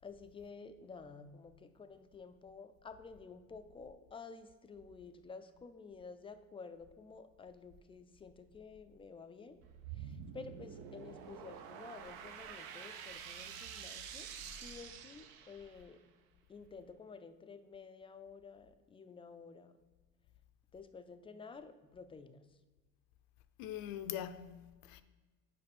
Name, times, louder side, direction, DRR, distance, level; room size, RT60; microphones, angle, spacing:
voice 1, 0.0-9.6 9.9-16.0 16.5-19.8 20.7-22.4, left 4 dB, 15° left, 0.3 m, -52 dB
sound 1, 9.6-15.9, right 8 dB, 80° right, 0.9 m, -48 dB
voice 2, 23.6-25.0, left 11 dB, 75° left, 0.7 m, -42 dB
6.7 x 5.0 x 5.2 m
cardioid pair, 145°, 35 cm